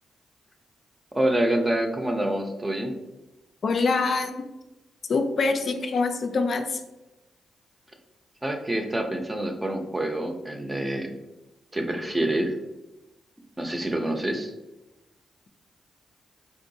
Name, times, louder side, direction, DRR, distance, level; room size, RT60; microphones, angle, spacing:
voice 1, 1.1-2.9 8.4-11.1 11.7-12.5 13.6-14.5, right 1 dB, 20° right, 4 dB, 0.6 m, -26 dB
voice 2, 3.6-4.4 5.1-6.8, left 4 dB, 60° left, 5 dB, 0.3 m, -24 dB
3.7 x 2.5 x 2.6 m, 1.0 s
supercardioid pair, 45°, 0 cm